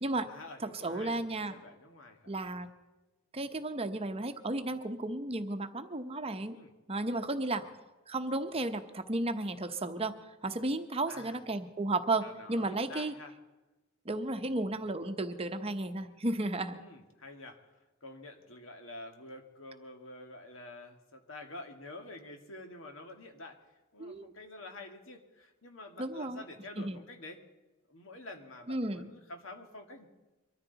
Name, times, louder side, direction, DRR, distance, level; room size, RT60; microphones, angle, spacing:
voice 1, 0.3-1.2 1.5-2.3 6.5-6.7 7.5-7.7 11.1-11.4 12.2-13.3 16.7-17.6 18.0-23.6 23.9-27.4 27.9-30.1, left 2 dB, 70° left, 4 dB, 2.0 m, -48 dB
voice 2, 0.8-1.5 2.3-2.7 3.3-6.6 6.9-7.6 8.1-10.1 10.4-13.1 14.0-16.8 24.0-24.3 26.0-26.4 26.8-27.0 28.7-29.1, right 2 dB, 30° right, 8 dB, 0.8 m, -33 dB
23.5 x 13.5 x 4.0 m, 1.1 s
head